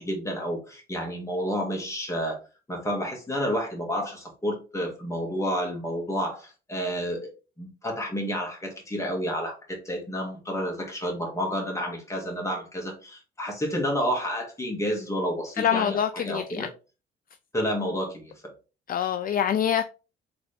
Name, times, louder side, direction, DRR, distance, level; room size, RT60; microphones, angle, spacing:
voice 1, 0.0-2.4 2.7-7.3 7.6-16.7 17.5-18.3, equal, 15° left, 1.9 m, -30 dB
voice 2, 15.6-16.7 18.9-19.8, left 9 dB, 45° left, 0.4 m, -25 dB
3.9 x 3.4 x 4.0 m
cardioid pair, 90°, 20 cm